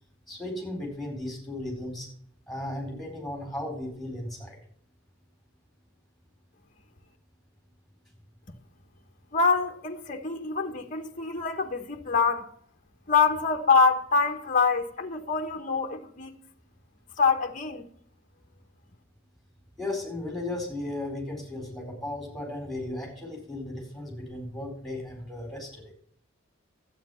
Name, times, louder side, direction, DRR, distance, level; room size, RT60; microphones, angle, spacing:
voice 1, 0.3-2.1 2.5-4.6 19.8-25.9, left 1 dB, ahead, 4.4 m, -35 dB
voice 2, 9.3-12.5 13.1-16.4 17.2-17.8, left 4 dB, 40° left, 1.1 m, -25 dB
12.0 x 8.8 x 5.6 m
head